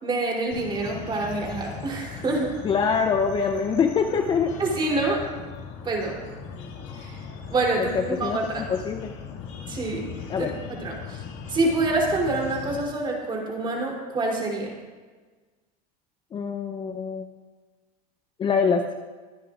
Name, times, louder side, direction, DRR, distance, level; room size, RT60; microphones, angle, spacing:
voice 1, 0.0-2.5 4.6-5.2 5.8-6.1 7.0-7.1 7.5-8.6 9.7-10.1 10.4-10.5 10.8-11.2 11.5-14.7, right 2 dB, 25° right, -1 dB, 3.2 m, -26 dB
sound 1, 0.5-12.8, left 6 dB, 65° left, 2.1 m, -39 dB
voice 2, 2.6-4.5 7.8-9.1 10.3-10.5 16.3-17.2 18.4-18.9, left 6 dB, 25° left, 6 dB, 0.6 m, -24 dB
22.0 x 10.0 x 2.5 m, 1.4 s
supercardioid pair, 130°, 19 cm